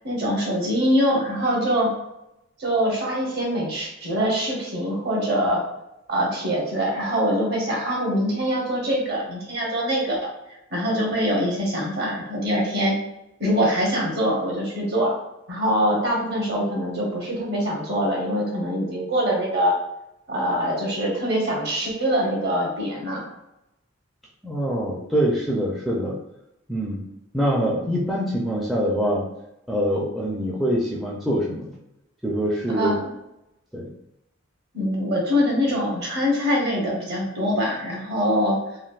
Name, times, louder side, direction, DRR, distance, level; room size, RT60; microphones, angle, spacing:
voice 1, 0.0-1.9 2.6-5.6 6.1-10.2 10.5-12.9 13.4-15.1 15.5-19.7 20.3-23.2 32.7-33.1 34.7-38.6, equal, 55° right, -2 dB, 1.0 m, -23 dB
voice 2, 24.4-26.2 26.7-27.0 27.3-29.3 29.7-31.7 32.2-33.0 33.7-33.9, equal, ahead, -4 dB, 0.4 m, -24 dB
3.2 x 2.4 x 2.4 m, 0.85 s
head